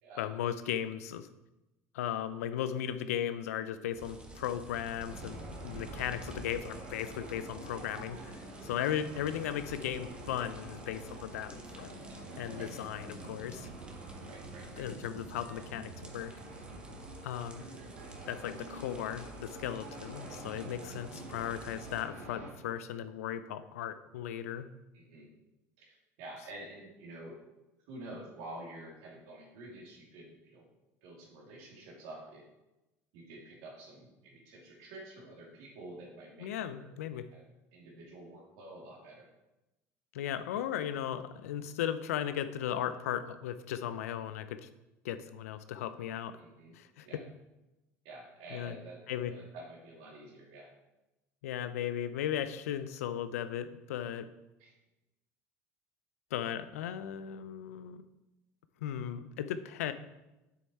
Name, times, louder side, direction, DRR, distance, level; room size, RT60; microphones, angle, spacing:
voice 1, 0.2-1.3 1.9-11.9 12.4-13.7 14.8-16.4 17.2-17.6 18.3-24.7 36.4-37.3 40.1-44.7 45.0-46.4 46.7-47.2 48.5-48.8 49.1-49.3 51.4-54.3 56.3-58.0 58.8-59.9, left 10 dB, 85° left, 12 dB, 0.5 m, -36 dB
sound 1, 4.0-22.0, right 1 dB, 15° right, 1.4 m, -52 dB
sound 2, 5.0-22.5, right 2 dB, 90° right, 2.3 m, -47 dB
voice 2, 14.3-14.9 24.9-25.3 25.8-27.4 27.9-30.7 31.0-32.4 33.1-36.9 37.3-37.4 37.7-39.3 46.4-46.7 47.1-47.2 48.0-49.0 49.3-50.7 54.6-54.7, right 1 dB, 70° right, -2 dB, 2.7 m, -49 dB
7.7 x 6.5 x 4.3 m, 0.97 s
hypercardioid pair, 75°, 8 cm